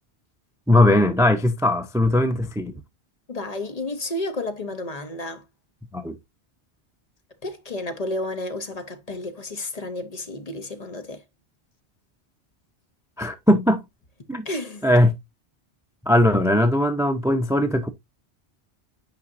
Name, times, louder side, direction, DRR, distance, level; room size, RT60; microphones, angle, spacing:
voice 1, 0.7-2.8 5.9-6.2 13.2-13.8 14.3-14.5 14.8-15.1 16.1-17.9, left 1 dB, 5° right, 0.3 m, -19 dB
voice 2, 3.3-5.4 7.4-11.2 14.4-14.9, left 2 dB, 40° left, 0.9 m, -31 dB
8.6 x 5.1 x 2.5 m
omnidirectional pair, 1.1 m